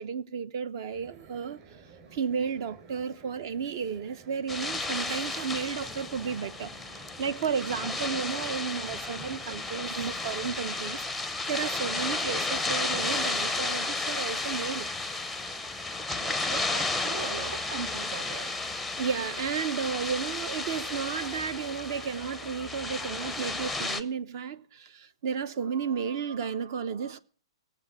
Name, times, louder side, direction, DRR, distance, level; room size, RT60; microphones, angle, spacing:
voice 1, 0.0-1.6 2.1-14.9 19.0-27.2, right 6 dB, 45° right, 0.8 m, -33 dB
sound 1, 0.9-10.8, right 4 dB, 30° right, 3.6 m, -53 dB
sound 2, 4.5-24.0, left 3 dB, ahead, 0.6 m, -33 dB
voice 2, 16.1-18.5, right 7 dB, 70° right, 1.1 m, -40 dB
17.0 x 7.4 x 7.5 m
hypercardioid pair, 160°, 3 cm